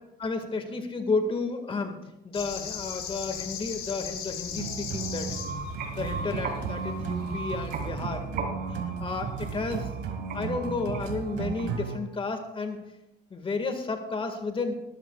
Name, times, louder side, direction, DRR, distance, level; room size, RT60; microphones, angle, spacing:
voice 1, 0.2-2.0 2.2-5.3 5.9-8.5 9.0-9.9 10.3-12.8 13.3-14.7, left 3 dB, 30° left, 6 dB, 1.9 m, -32 dB
sound 1, 2.3-7.7, left 8 dB, 85° left, 4.6 m, -39 dB
sound 2, 4.5-12.0, right 6 dB, 85° right, 2.2 m, -34 dB
sound 3, 5.2-12.0, right 3 dB, 65° right, 4.3 m, -39 dB
20.0 x 14.0 x 2.4 m, 0.98 s
cardioid pair, 110°, 17 cm